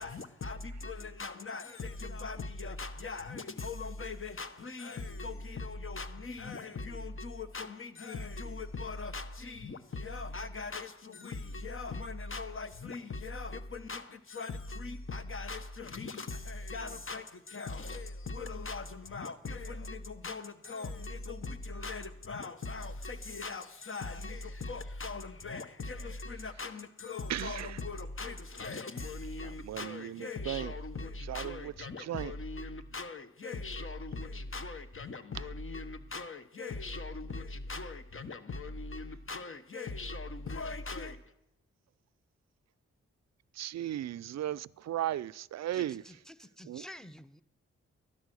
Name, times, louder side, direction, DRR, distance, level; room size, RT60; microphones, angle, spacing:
voice 1, 0.0-41.2, left 3 dB, 45° left, 1.3 m, -40 dB
voice 2, 27.3-27.8 29.6-30.7 31.3-31.7 32.0-32.3 43.6-46.0 46.7-46.8, right 12 dB, 65° right, 0.5 m, -36 dB
voice 3, 45.7-47.4, left 1 dB, ahead, 0.9 m, -50 dB
12.5 x 10.0 x 6.3 m
supercardioid pair, 40°, 30 cm